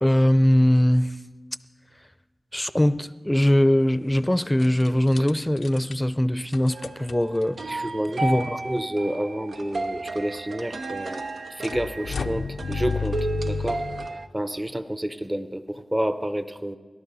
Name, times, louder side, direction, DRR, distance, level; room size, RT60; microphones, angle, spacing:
voice 1, 0.0-1.1 2.5-7.9 8.2-8.6, left 1 dB, 10° left, 0.6 m, -21 dB
sound 1, 3.8-4.2 4.6-5.9 6.5-7.7 8.5-8.6 8.7-8.8 11.6-14.1, left 5 dB, 90° left, 0.5 m, -32 dB
sound 2, 6.7-14.3, right 3 dB, 80° right, 0.9 m, -33 dB
voice 2, 7.6-8.2 8.6-11.2 11.5-13.8 14.3-16.8, right 1 dB, 20° right, 0.8 m, -29 dB
28.5 x 12.0 x 4.1 m
cardioid pair, 55°, 0 cm